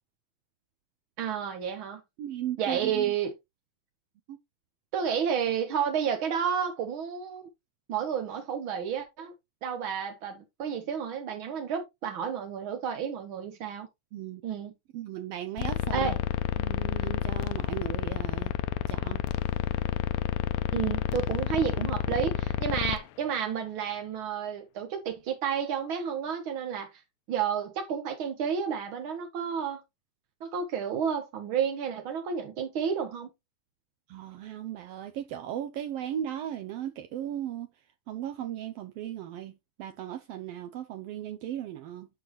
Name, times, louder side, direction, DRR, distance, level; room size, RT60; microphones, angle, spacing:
voice 1, 1.2-2.0 2.6-3.3 4.9-7.5 7.9-9.3 9.6-13.9 14.4-14.7 15.9-16.2 20.7-27.0 27.3-29.8 30.4-33.3, right 7 dB, 60° right, 1.4 m, -31 dB
voice 2, 2.2-3.1 4.3-4.4 14.1-14.4 14.9-16.1 16.6-18.5 18.9-19.2 34.1-37.7 38.1-42.1, right 11 dB, 90° right, 1.3 m, -36 dB
sound 1, 15.6-23.0, left 11 dB, 80° left, 1.9 m, -30 dB
12.0 x 4.7 x 3.0 m
omnidirectional pair, 3.5 m